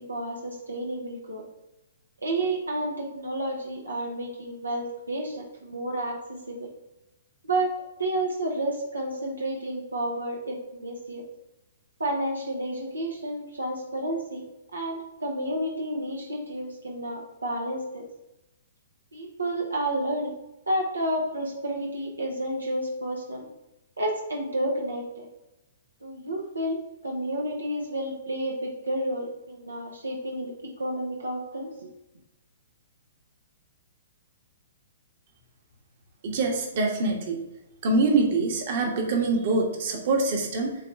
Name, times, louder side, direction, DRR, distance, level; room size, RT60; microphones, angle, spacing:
voice 1, 0.0-1.4 2.2-6.7 7.4-11.2 12.0-14.4 14.7-18.0 19.1-20.3 20.7-23.5 24.0-25.3 26.0-31.9, right 1 dB, 90° right, 1 dB, 1.1 m, -31 dB
voice 2, 36.2-37.4 37.8-40.7, right 3 dB, 50° right, 2 dB, 1.4 m, -24 dB
7.5 x 3.1 x 4.8 m, 0.95 s
figure-of-eight pair, 120°, 0 cm